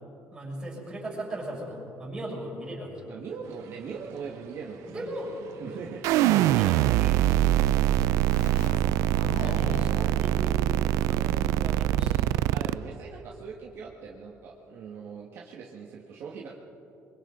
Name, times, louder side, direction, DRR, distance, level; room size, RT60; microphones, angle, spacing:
voice 1, 0.3-3.0 4.8-5.3 6.5-8.0 8.3-10.6 11.0-12.5, right 1 dB, 15° right, -4 dB, 6.7 m, -39 dB
voice 2, 3.0-5.1 5.6-6.5 12.5-16.6, right 5 dB, 50° right, -2 dB, 1.7 m, -41 dB
sound 1, 3.4-13.0, right 9 dB, 70° right, 1.0 m, -47 dB
sound 2, 6.0-12.7, right 14 dB, 85° right, 0.4 m, -23 dB
Keyboard (musical), 8.3-11.7, left 6 dB, 80° left, 1.1 m, -43 dB
28.0 x 24.0 x 3.9 m, 2.9 s
cardioid pair, 170°, 5 cm